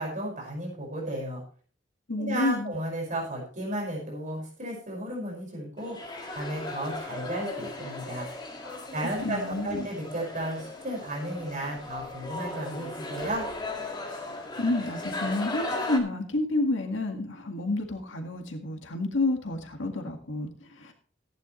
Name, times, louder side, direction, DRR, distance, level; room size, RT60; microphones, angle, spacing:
voice 1, 0.0-1.4 2.2-8.3 8.9-13.5, right 1 dB, 45° right, -2 dB, 5.5 m, -34 dB
voice 2, 2.1-2.7 8.6-8.9 9.2-9.9 14.1-20.9, left 2 dB, 90° left, 4 dB, 1.9 m, -30 dB
sound 1, 5.8-16.0, left 2 dB, 25° left, 2.1 m, -37 dB
15.5 x 10.5 x 3.2 m, 0.42 s
head